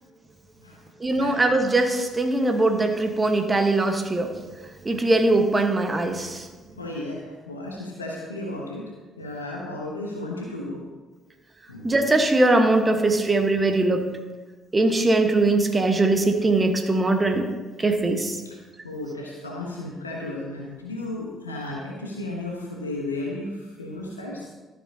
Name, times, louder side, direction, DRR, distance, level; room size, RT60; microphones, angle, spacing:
voice 1, 1.0-4.3 4.8-6.4 11.8-14.1 14.7-17.5 17.8-18.4, right 2 dB, 25° right, 5 dB, 1.3 m, -21 dB
voice 2, 6.7-8.8 9.2-10.8 11.7-11.9 18.4-18.6 18.8-24.5, left 2 dB, 90° left, -2 dB, 1.0 m, -34 dB
13.0 x 7.1 x 2.8 m, 1.3 s
figure-of-eight pair, 45°, 0 cm